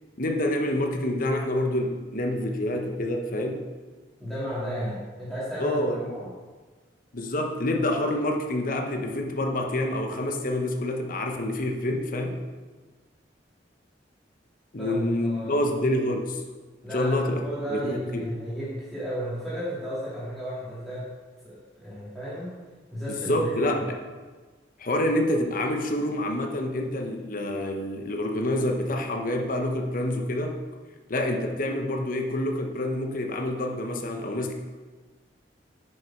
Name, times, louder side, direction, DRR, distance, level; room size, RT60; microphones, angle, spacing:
voice 1, 0.2-3.6 5.6-6.1 7.1-12.4 14.7-16.4 16.9-17.4 17.7-18.3 23.1-24.0 24.8-30.6 31.1-34.5, left 1 dB, 50° left, 3 dB, 0.9 m, -27 dB
voice 2, 4.2-6.3 14.8-15.6 16.8-21.1 21.4-22.6 22.9-23.8, equal, ahead, -11 dB, 2.1 m, -34 dB
10.0 x 6.5 x 4.5 m, 1.4 s
head